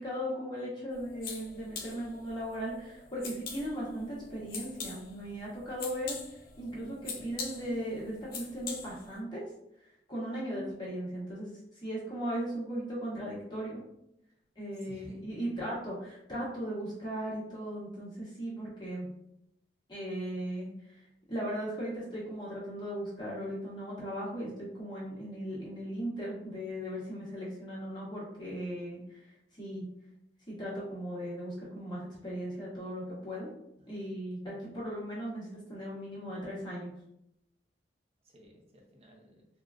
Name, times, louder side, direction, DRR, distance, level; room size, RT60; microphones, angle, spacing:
voice 1, 0.0-9.4 9.8-13.8 14.6-19.1 19.9-21.0 21.3-29.8 30.5-33.5 33.9-36.9, equal, 25° left, -7 dB, 1.0 m, -37 dB
sound 1, 0.9-9.2, left 5 dB, 55° left, 0.5 m, -44 dB
voice 2, 14.8-15.7 33.8-34.0 38.2-39.5, equal, 35° right, 0 dB, 0.7 m, -56 dB
3.6 x 2.2 x 2.4 m, 0.80 s
head